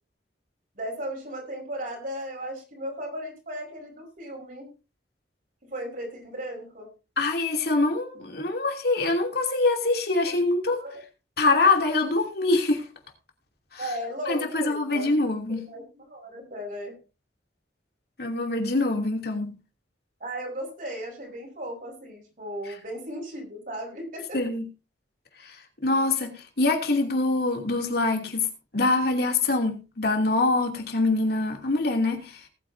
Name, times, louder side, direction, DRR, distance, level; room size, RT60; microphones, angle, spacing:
voice 1, 0.7-4.7 5.6-6.9 10.3-10.4 10.8-11.0 13.8-17.0 20.2-24.4, equal, 50° right, 4.8 m, -36 dB
voice 2, 7.2-10.8 11.4-12.8 13.7-13.8 14.3-15.7 18.2-19.5 24.3-24.6 25.4-25.5 25.8-28.5 28.7-32.3, left 3 dB, 60° left, 2.8 m, -24 dB
19.0 x 9.0 x 2.7 m
head